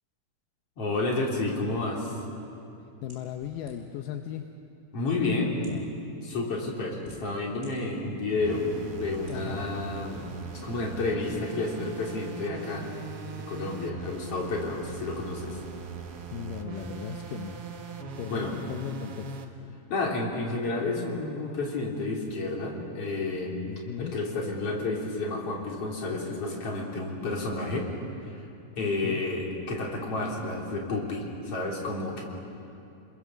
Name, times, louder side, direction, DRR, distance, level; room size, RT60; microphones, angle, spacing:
voice 1, 0.8-2.1 4.9-5.5 6.2-8.7 8.9-12.9 13.5-15.6 18.3-18.5 19.9-23.5 24.0-27.9 28.8-32.2, left 3 dB, 40° left, -1 dB, 4.0 m, -30 dB
voice 2, 3.0-4.5 5.0-5.9 9.3-9.7 16.3-17.6 18.2-19.4 23.7-24.2 28.8-29.2, left 9 dB, 75° left, 5 dB, 2.1 m, -37 dB
sound 1, 3.1-4.1 4.9-5.0 5.5-5.9 6.6-7.7 8.2-8.3 9.1-9.4, right 1 dB, 10° right, 6.3 m, -54 dB
sound 2, 8.4-19.5, right 5 dB, 55° right, 1.8 m, -40 dB
30.0 x 22.0 x 7.3 m, 2.8 s
omnidirectional pair, 4.6 m